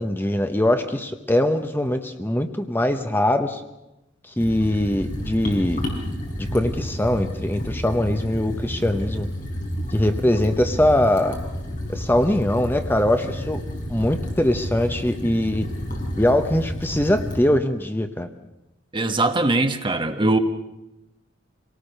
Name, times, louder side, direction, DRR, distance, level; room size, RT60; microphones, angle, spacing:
voice 1, 0.0-3.6 4.4-5.8 6.4-9.3 9.9-11.4 11.9-13.6 13.9-15.6 16.2-18.3, left 1 dB, 10° left, 7 dB, 0.9 m, -22 dB
sound 1, 4.4-17.4, equal, 45° left, 5.4 m, -30 dB
voice 2, 18.9-20.4, right 2 dB, 25° right, 7 dB, 1.2 m, -21 dB
25.5 x 18.5 x 6.6 m, 0.92 s
head